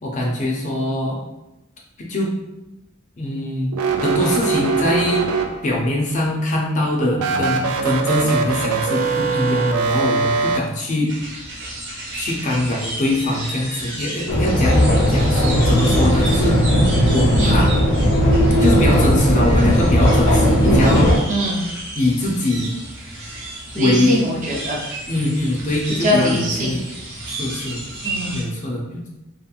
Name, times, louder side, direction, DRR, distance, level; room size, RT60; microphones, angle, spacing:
voice 1, 0.0-1.2 2.0-2.4 3.2-3.7 4.0-5.4 5.6-11.2 12.2-14.8 15.1-16.6 17.1-17.7 18.6-21.2 22.0-22.8 23.7-24.2 25.1-26.9 27.3-27.8 28.3-29.1, left 1 dB, 35° left, -2 dB, 0.5 m, -22 dB
sound 1, 3.7-5.9 7.1-10.6, right 4 dB, 80° right, 0.3 m, -22 dB
sound 2, 11.1-28.4, right 1 dB, 55° right, 1.0 m, -33 dB
sound 3, 14.3-21.2, equal, 85° left, 0.7 m, -16 dB
voice 2, 17.3-17.7 21.3-21.6 23.7-24.8 26.0-26.8 28.0-28.4, equal, 35° right, -3 dB, 0.6 m, -22 dB
2.8 x 2.4 x 2.4 m, 0.95 s
head